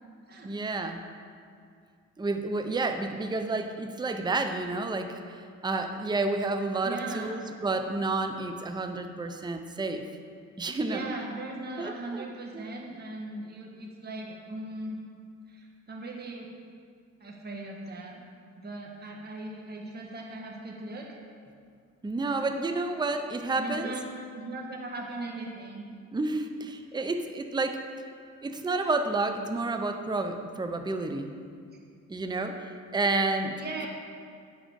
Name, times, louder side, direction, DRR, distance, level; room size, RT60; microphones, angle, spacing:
voice 1, 0.4-1.0 2.2-10.0 10.6-11.1 11.8-12.2 12.5-12.7 22.0-23.9 26.1-27.8 28.4-31.3 32.1-33.6, right 3 dB, 15° right, 6 dB, 0.6 m, -30 dB
voice 2, 6.8-7.4 10.8-15.0 15.5-16.5 17.2-18.2 18.6-21.1 22.3-22.5 23.6-25.9 33.6-33.9, right 2 dB, 35° right, -1 dB, 1.5 m, -39 dB
10.0 x 6.3 x 5.2 m, 2.3 s
cardioid pair, 90°, 30 cm